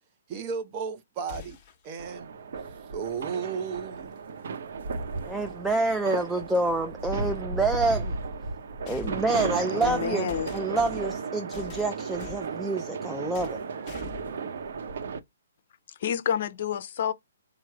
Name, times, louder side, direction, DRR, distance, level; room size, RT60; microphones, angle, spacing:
voice 1, 0.3-1.6 1.8-2.3 2.9-4.2, right 6 dB, 30° right, 0.7 m, -34 dB
sound 1, 1.3-1.8 4.0-4.1 5.2-5.3 8.9-11.2 11.5-12.5 13.3-13.6 13.8-14.3, left 8 dB, 25° left, 1.1 m, -43 dB
sound 2, 2.0-15.2, right 4 dB, 65° right, 0.7 m, -34 dB
voice 2, 5.2-8.1 8.9-13.6, right 2 dB, 5° right, 0.3 m, -28 dB
voice 3, 9.7-10.5 15.9-17.1, left 8 dB, 50° left, 0.6 m, -29 dB
4.7 x 2.0 x 4.5 m
hypercardioid pair, 150°, 0 cm